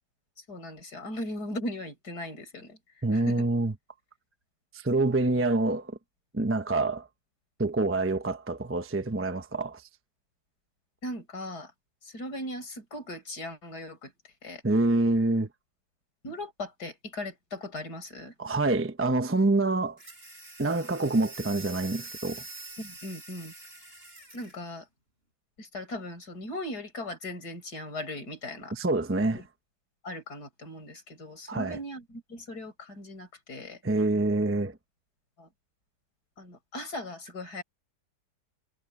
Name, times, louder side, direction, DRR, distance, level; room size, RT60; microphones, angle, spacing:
voice 1, 0.4-3.5 11.0-11.7 12.0-14.6 16.2-18.3 22.8-23.5 24.3-24.9 25.6-28.8 29.3-29.4 30.0-33.8 35.4-35.5 36.4-37.6, left 1 dB, 65° left, 6.7 m, -39 dB
voice 2, 3.0-3.7 4.7-5.9 6.3-7.1 7.6-9.8 14.6-15.5 18.4-20.0 20.6-22.4 28.7-29.4 31.5-31.8 33.8-34.8, right 2 dB, 10° right, 0.6 m, -26 dB
sound 1, 20.0-24.6, right 2 dB, 35° right, 7.2 m, -45 dB
omnidirectional pair, 1.8 m